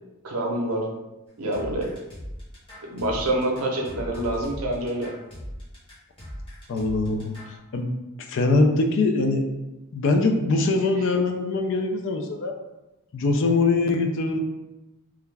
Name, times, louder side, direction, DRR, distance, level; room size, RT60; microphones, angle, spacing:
voice 1, 0.2-0.9 1.4-1.9 2.8-5.1, right 1 dB, 75° right, -1 dB, 0.6 m, -26 dB
sound 1, 1.5-7.6, equal, 25° left, 0.9 m, -38 dB
voice 2, 6.7-7.3 7.7-7.9 8.2-9.4 9.9-12.5 13.1-14.4, left 3 dB, 55° left, 4 dB, 0.3 m, -22 dB
2.3 x 2.2 x 3.2 m, 0.99 s
head